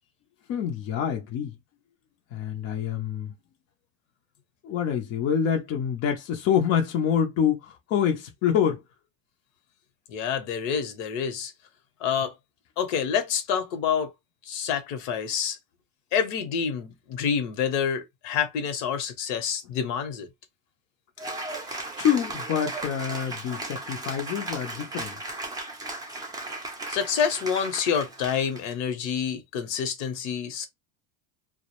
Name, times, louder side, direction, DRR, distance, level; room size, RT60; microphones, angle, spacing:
voice 1, 0.5-1.6 2.3-3.3 4.6-8.8 21.7-25.1, left 8 dB, 40° left, 0.5 m, -26 dB
voice 2, 10.1-11.5 12.0-12.3 12.8-14.1 14.5-15.6 16.1-20.3 26.9-30.7, left 7 dB, 65° left, 0.9 m, -27 dB
Cheering / Applause, 21.2-28.7, right 2 dB, 10° right, 0.5 m, -36 dB
2.3 x 2.1 x 2.9 m
supercardioid pair, 130°, 39 cm